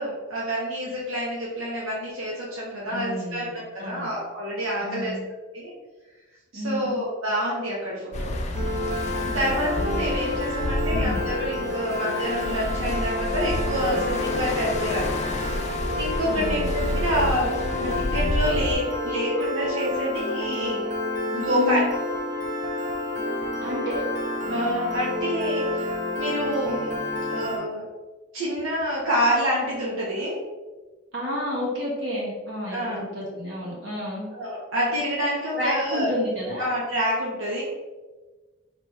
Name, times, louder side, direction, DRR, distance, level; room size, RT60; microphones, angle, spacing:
voice 1, 0.0-5.2 5.5-5.7 6.5-8.4 9.2-15.5 15.7-20.8 21.3-21.8 24.5-25.9 26.2-27.0 27.3-27.8 28.3-30.4 32.7-33.0 34.3-36.1 36.6-37.6, equal, 85° right, -5 dB, 0.9 m, -27 dB
voice 2, 2.9-3.5 3.8-4.1 4.8-5.2 6.5-7.0 9.3-9.5 9.8-10.1 10.9-11.2 16.3-17.3 21.5-21.9 23.6-24.0 31.1-34.3 35.5-36.7, left 1 dB, 60° right, -4 dB, 1.5 m, -31 dB
sound 1, 8.1-18.8, left 1 dB, 35° left, 0.4 m, -30 dB
Piano, 8.5-27.6, left 1 dB, 40° right, 0.8 m, -29 dB
4.9 x 3.0 x 3.0 m, 1.2 s
head